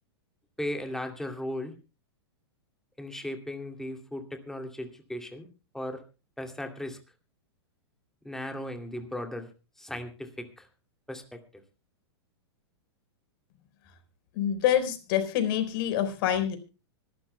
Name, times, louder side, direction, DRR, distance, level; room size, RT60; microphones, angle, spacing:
voice 1, 0.6-1.7 3.0-5.5 5.7-6.0 6.4-7.0 8.2-9.5 9.8-10.7 11.1-11.4, left 1 dB, 5° left, 5 dB, 2.5 m, -36 dB
voice 2, 14.3-16.6, left 10 dB, 55° left, 9 dB, 4.4 m, -26 dB
25.0 x 12.5 x 2.2 m, 0.32 s
hypercardioid pair, 130°, 14 cm